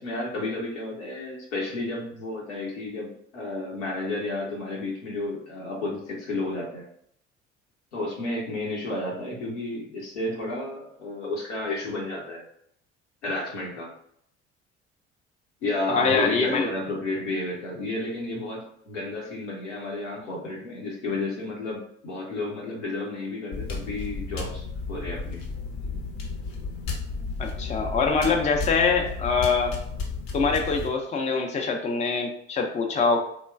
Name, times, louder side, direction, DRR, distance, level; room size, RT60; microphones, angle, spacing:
voice 1, 0.0-6.9 7.9-12.4 13.2-13.9 15.6-25.4, left 2 dB, 80° left, -3 dB, 0.9 m, -32 dB
voice 2, 15.9-16.7 27.4-29.7 30.3-33.2, left 4 dB, 20° left, 3 dB, 0.5 m, -24 dB
sound 1, 23.5-30.9, left 4 dB, 50° left, 0.7 m, -33 dB
3.2 x 2.2 x 2.4 m, 0.69 s
figure-of-eight pair, 50°, 35 cm